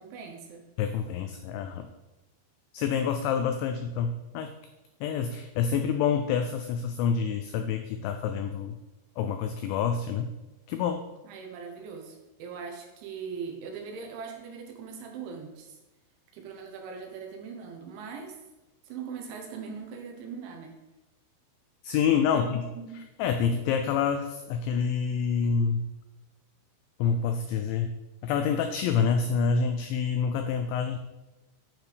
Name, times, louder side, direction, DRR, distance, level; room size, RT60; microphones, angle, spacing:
voice 1, 0.0-0.6 11.2-15.8 16.3-18.4 18.9-20.8 22.1-23.1, right 6 dB, 75° right, 2 dB, 3.2 m, -41 dB
voice 2, 0.8-1.9 2.7-4.5 5.0-8.8 9.2-10.3 10.7-11.0 21.8-22.7 23.2-25.9 27.0-28.0 28.2-31.0, left 6 dB, 90° left, 7 dB, 2.6 m, -27 dB
9.6 x 7.7 x 3.4 m, 1.1 s
omnidirectional pair, 5.8 m